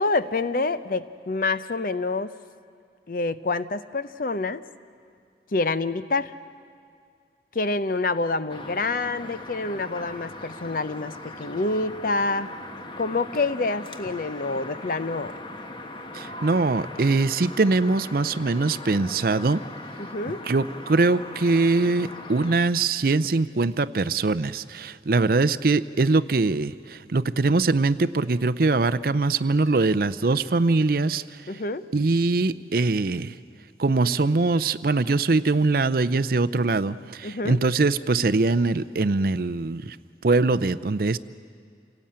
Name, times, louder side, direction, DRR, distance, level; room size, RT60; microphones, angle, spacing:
voice 1, 0.0-2.3 3.1-4.6 5.5-6.3 7.5-12.5 13.0-15.4 20.0-20.4 25.3-25.4 31.5-31.9 37.2-37.6, left 3 dB, 50° left, 13 dB, 0.7 m, -27 dB
sound 1, 8.5-22.6, left 2 dB, 25° left, 1.2 m, -39 dB
voice 2, 16.1-19.6 20.4-31.2 31.9-33.3 33.8-40.0 40.2-41.2, right 3 dB, 55° right, 14 dB, 0.5 m, -22 dB
28.0 x 18.0 x 8.8 m, 2.2 s
head